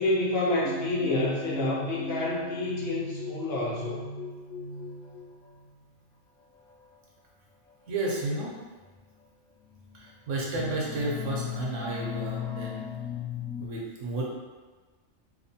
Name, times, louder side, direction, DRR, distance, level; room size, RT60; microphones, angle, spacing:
voice 1, 0.0-4.1, left 2 dB, 60° left, -4 dB, 0.7 m, -28 dB
sound 1, 0.6-5.8 6.7-6.9 8.1-8.2 8.9-9.0 9.7-10.1 10.4-13.7, left 5 dB, 85° left, 1.0 m, -37 dB
voice 2, 7.9-8.5 9.9-12.8 13.6-14.3, right 2 dB, 75° right, -3 dB, 0.9 m, -32 dB
2.9 x 2.1 x 2.7 m, 1.3 s
omnidirectional pair, 1.3 m